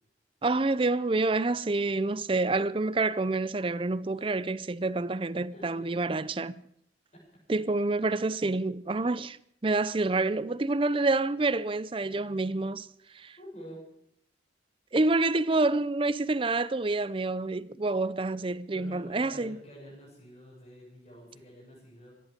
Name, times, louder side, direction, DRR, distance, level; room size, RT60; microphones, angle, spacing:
voice 1, 0.4-6.6 7.5-9.4 9.6-12.9 13.1-13.4 14.9-19.6, right 3 dB, 30° right, 0.5 m, -28 dB
voice 2, 5.5-6.0 13.4-13.8 18.7-22.1, equal, 40° left, 7.3 m, -48 dB
24.5 x 11.0 x 5.2 m
head